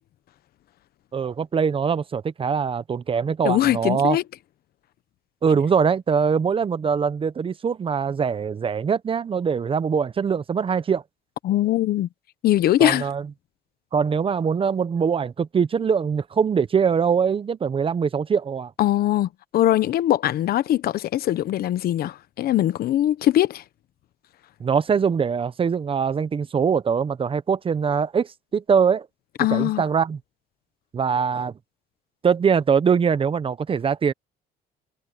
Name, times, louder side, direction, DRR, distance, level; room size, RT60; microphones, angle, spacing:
voice 1, 1.1-4.2 5.4-11.0 12.8-13.3 13.9-18.7 24.6-29.1 29.5-30.2 30.9-31.5 32.2-34.1, right 6 dB, 30° right, 0.9 m, -22 dB
voice 2, 3.4-4.2 11.4-12.1 12.4-13.1 18.8-23.6 29.4-29.8, left 13 dB, 65° left, 1.1 m, -21 dB
cardioid pair, 110°, 17 cm